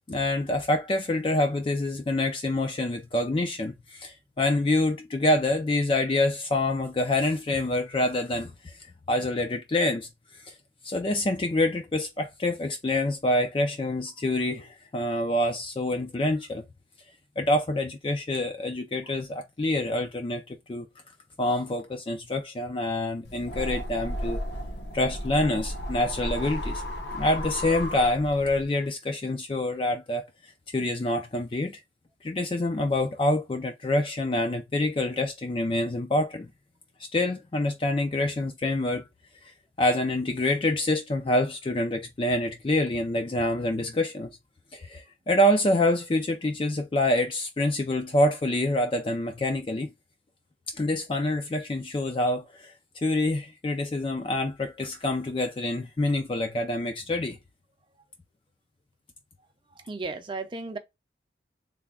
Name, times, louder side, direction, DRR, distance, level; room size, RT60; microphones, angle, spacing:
voice 1, 0.1-8.8 9.1-10.1 10.3-10.5 10.8-16.6 17.4-20.9 21.4-24.4 24.9-26.8 27.1-30.3 30.7-31.8 32.2-36.5 37.1-39.0 39.8-44.4 44.7-49.9 50.7-57.4, left 1 dB, 30° left, 0.4 m, -26 dB
sound 1, 23.2-28.6, equal, 70° left, 0.8 m, -34 dB
voice 2, 59.9-60.8, right 3 dB, 25° right, 0.5 m, -34 dB
3.4 x 2.2 x 3.5 m
head